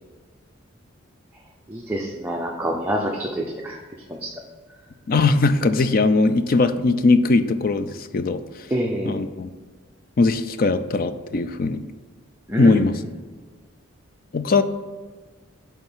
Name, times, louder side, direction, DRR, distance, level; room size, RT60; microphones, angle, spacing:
voice 1, 1.7-3.8 4.1-4.3 8.7-9.3 12.5-12.8, right 1 dB, 10° right, -1 dB, 0.6 m, -26 dB
voice 2, 5.1-8.4 9.0-9.5 10.2-11.8 12.6-13.0 14.3-14.6, left 3 dB, 45° left, 11 dB, 0.4 m, -20 dB
8.9 x 3.5 x 5.5 m, 1.4 s
head